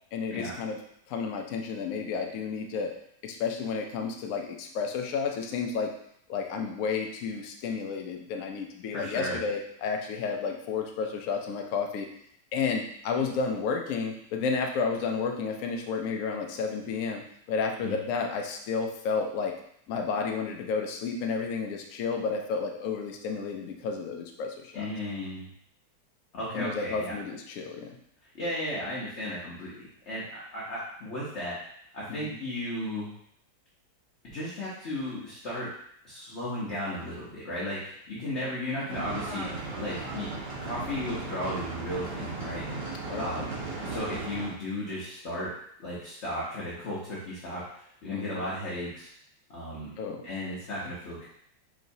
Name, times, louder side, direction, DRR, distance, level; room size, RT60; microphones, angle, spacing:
voice 1, 0.1-0.8 1.1-2.9 3.2-5.9 6.3-12.1 12.5-19.5 19.9-24.9 26.5-28.0 32.1-32.4 38.1-38.4 43.1-43.3 48.1-48.4 50.0-50.2, left 5 dB, 90° left, 2 dB, 0.7 m, -31 dB
voice 2, 8.9-9.4 17.8-18.0 24.7-25.5 26.3-27.1 28.3-31.6 31.9-33.1 34.3-35.7 36.0-39.5 39.8-40.3 40.6-42.8 43.2-43.5 43.8-45.5 45.8-49.1 49.5-49.9 50.2-51.3, left 1 dB, 50° left, -8 dB, 0.9 m, -35 dB
sound 1, 38.9-44.5, right 3 dB, 30° right, 1.0 m, -36 dB
4.7 x 3.0 x 2.6 m, 0.70 s
omnidirectional pair, 2.1 m